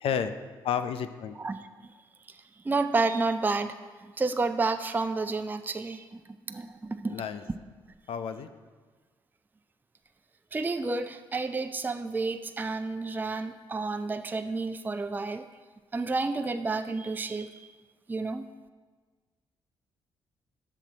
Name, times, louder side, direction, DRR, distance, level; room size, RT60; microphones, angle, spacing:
voice 1, 0.0-0.3 0.6-1.4 7.1-7.4 8.1-8.5, left 8 dB, 70° left, 10 dB, 0.5 m, -31 dB
voice 2, 2.6-3.7 4.0-6.1 6.5-7.2 10.5-15.5 15.9-17.7 18.1-18.5, right 3 dB, 20° right, 8 dB, 0.4 m, -30 dB
9.1 x 7.3 x 4.0 m, 1.4 s
supercardioid pair, 50°, 10 cm